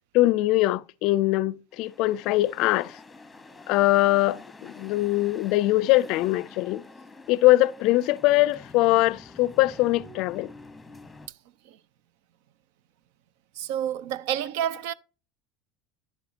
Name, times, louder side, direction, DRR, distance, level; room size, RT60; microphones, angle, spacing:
voice 1, 0.1-3.0 3.7-6.8 7.3-10.5, left 17 dB, 60° left, 0.4 m, -22 dB
sound 1, 1.7-11.3, left 3 dB, 10° left, 1.1 m, -47 dB
voice 2, 13.6-14.9, right 10 dB, 75° right, 0.5 m, -29 dB
11.0 x 6.9 x 2.8 m
supercardioid pair, 110°, 0 cm